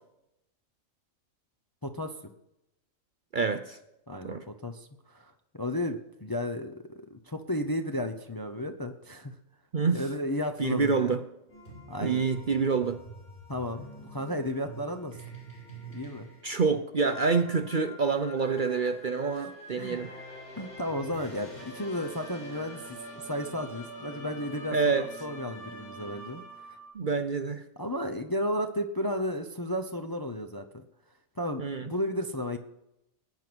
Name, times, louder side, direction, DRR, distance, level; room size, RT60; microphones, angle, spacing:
voice 1, 1.8-2.1 4.1-9.3 9.9-11.1 11.9-12.3 13.5-15.2 15.9-16.3 19.4-20.0 20.6-26.8 27.8-30.8 31.4-32.6, left 1 dB, 20° left, 6 dB, 0.6 m, -34 dB
voice 2, 3.3-3.8 4.2-4.4 9.7-10.0 10.6-11.2 12.0-13.0 16.4-20.1 24.7-25.1 26.9-27.6 31.6-31.9, right 5 dB, 45° right, 9 dB, 0.7 m, -27 dB
sound 1, 11.5-26.9, right 1 dB, 55° left, 6.9 m, -45 dB
19.5 x 9.4 x 6.2 m, 0.89 s
omnidirectional pair, 1.4 m